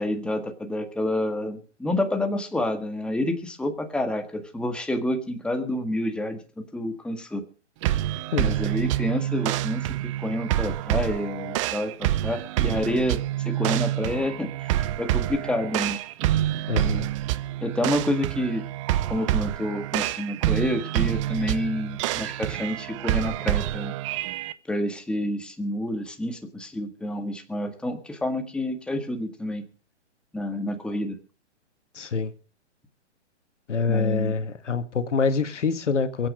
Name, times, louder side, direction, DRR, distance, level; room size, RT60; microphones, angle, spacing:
voice 1, 0.0-7.4 8.4-9.9 10.2-16.0 17.6-18.6 19.1-23.9 24.7-29.7 30.3-31.2 33.9-34.3, left 1 dB, 5° left, 1.7 m, -29 dB
sound 1, 7.8-24.5, right 13 dB, 25° right, 0.7 m, -27 dB
voice 2, 16.7-17.1 31.9-32.3 33.7-36.3, left 5 dB, 80° left, 1.9 m, -25 dB
23.0 x 8.8 x 5.2 m
hypercardioid pair, 135°, 36 cm